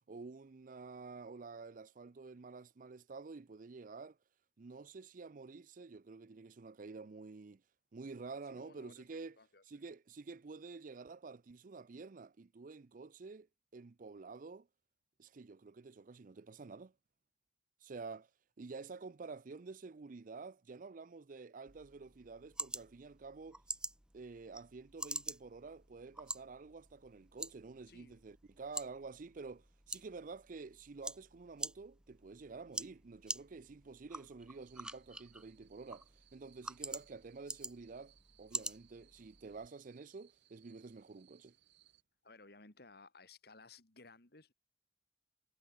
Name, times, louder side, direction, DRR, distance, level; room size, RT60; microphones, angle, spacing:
voice 1, 0.1-4.2 4.6-7.6 7.9-9.4 9.6-13.5 13.7-14.7 15.2-16.9 17.8-18.3 18.6-23.6 24.1-41.5, right 4 dB, 50° right, 0.5 m, -50 dB
voice 2, 8.5-9.8 27.9-28.2 42.2-44.5, left 3 dB, 60° left, 2.6 m, -59 dB
sound 1, 21.7-39.7, right 2 dB, 5° right, 0.6 m, -47 dB
sound 2, 34.5-42.0, right 13 dB, 80° right, 5.4 m, -69 dB
head